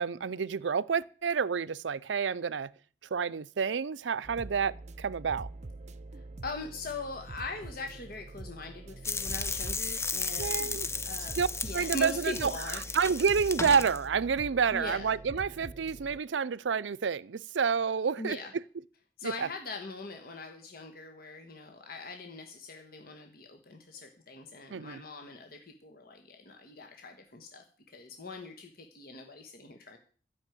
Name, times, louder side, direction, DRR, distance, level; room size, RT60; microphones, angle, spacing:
voice 1, 0.0-2.7 3.1-5.5 10.4-10.9 11.4-11.5 11.7-12.5 12.9-18.4 19.2-19.3 24.7-25.0, right 6 dB, 85° right, 0.5 m, -29 dB
sound 1, 4.2-16.2, right 2 dB, 40° right, 0.6 m, -45 dB
voice 2, 6.1-11.4 11.6-12.8 14.7-15.1 18.2-18.5 19.2-30.0, left 2 dB, 55° left, 1.5 m, -41 dB
sound 2, 9.0-14.0, left 4 dB, 15° left, 0.7 m, -35 dB
12.5 x 6.4 x 9.2 m
head